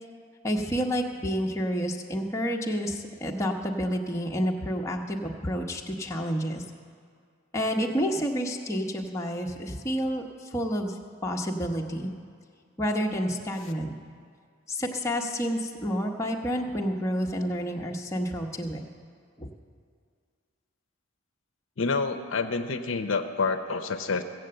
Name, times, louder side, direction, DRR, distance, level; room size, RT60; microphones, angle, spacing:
voice 1, 0.4-6.6 7.5-12.1 12.8-13.9 14.7-18.8 19.4-19.5, equal, 15° left, 0 dB, 0.8 m, -29 dB
voice 2, 21.8-24.2, left 4 dB, 60° left, 6 dB, 0.6 m, -28 dB
16.0 x 7.7 x 7.7 m, 2.1 s
head